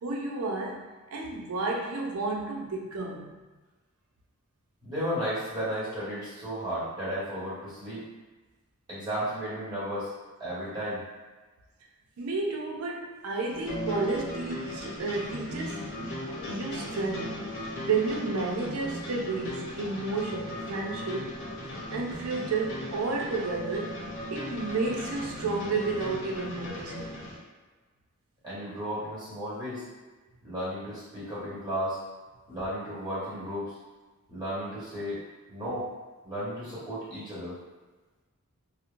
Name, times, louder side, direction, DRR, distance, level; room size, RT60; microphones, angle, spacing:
voice 1, 0.0-3.5 12.2-16.0 16.5-17.5 17.8-21.5 21.9-27.2, right 3 dB, 90° right, -1 dB, 0.5 m, -32 dB
voice 2, 4.8-8.0 8.9-10.1 10.4-11.0 28.4-29.8 30.4-32.0 32.5-33.7 34.3-35.2 35.5-35.9 36.2-37.6, equal, 20° right, -10 dB, 1.2 m, -34 dB
sound 1, 13.5-27.4, left 1 dB, 60° left, 0.8 m, -37 dB
2.8 x 2.0 x 2.5 m, 1.3 s
head